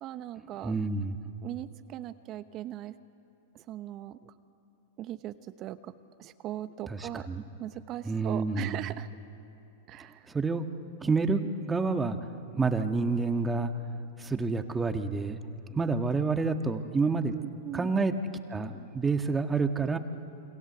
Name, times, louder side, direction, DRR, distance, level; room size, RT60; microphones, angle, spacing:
voice 1, 0.0-0.8 1.4-3.0 3.5-4.3 5.0-5.9 6.2-7.3 7.6-9.1 9.9-10.3 17.3-17.9, right 13 dB, 40° right, 12 dB, 1.0 m, -39 dB
voice 2, 0.6-1.2 6.9-7.4 8.0-8.8 10.3-10.7 11.0-12.2 12.5-13.7 14.2-15.4 15.7-17.3 17.7-18.1 18.5-20.0, right 4 dB, 15° right, 7 dB, 1.7 m, -28 dB
28.5 x 25.0 x 8.1 m, 2.9 s
hypercardioid pair, 110°, 0 cm